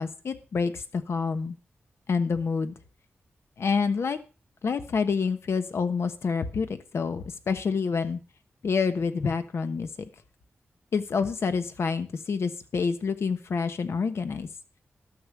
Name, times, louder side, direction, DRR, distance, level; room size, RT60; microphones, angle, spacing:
voice 1, 0.0-1.5 2.1-2.7 3.6-4.2 4.6-8.2 8.6-10.1 10.9-14.5, left 5 dB, 70° left, 10 dB, 1.2 m, -27 dB
12.0 x 6.9 x 6.0 m, 0.35 s
wide cardioid pair, 80°, 4 cm